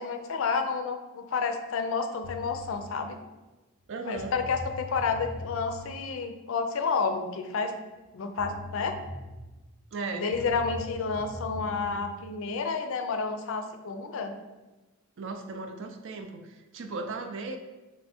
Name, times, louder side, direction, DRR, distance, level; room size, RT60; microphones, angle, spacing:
voice 1, 0.0-3.2 4.0-7.7 8.1-9.0 10.1-14.3, left 5 dB, 60° left, 7 dB, 0.4 m, -30 dB
sound 1, 2.2-2.8 3.8-3.9 4.2-5.9 8.0-8.1 8.4-9.6 10.3-12.0, left 2 dB, 80° right, 0.8 m, -41 dB
voice 2, 3.9-4.3 9.9-10.3 15.2-17.6, right 3 dB, 55° right, 6 dB, 0.4 m, -36 dB
3.4 x 3.1 x 4.1 m, 1.1 s
head